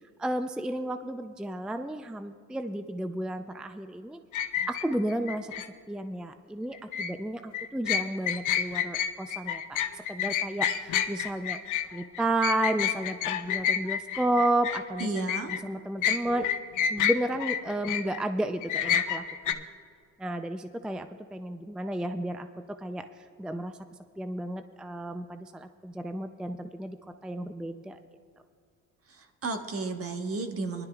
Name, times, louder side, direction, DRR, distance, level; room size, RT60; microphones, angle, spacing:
voice 1, 0.2-4.2 4.7-5.5 5.9-11.6 11.9-16.5 16.9-19.7 20.2-22.5 22.8-23.0 23.4-23.7 24.2-27.0 27.2-28.0, right 1 dB, 5° right, 9 dB, 0.4 m, -32 dB
sound 1, 4.3-5.7 6.7-7.1 7.5-15.6 16.0-18.2 18.6-19.5, left 9 dB, 80° left, 0.7 m, -29 dB
voice 2, 15.0-15.6 29.1-30.9, right 3 dB, 50° right, 5 dB, 1.2 m, -33 dB
21.0 x 11.5 x 2.3 m, 2.2 s
cardioid pair, 90°, 30 cm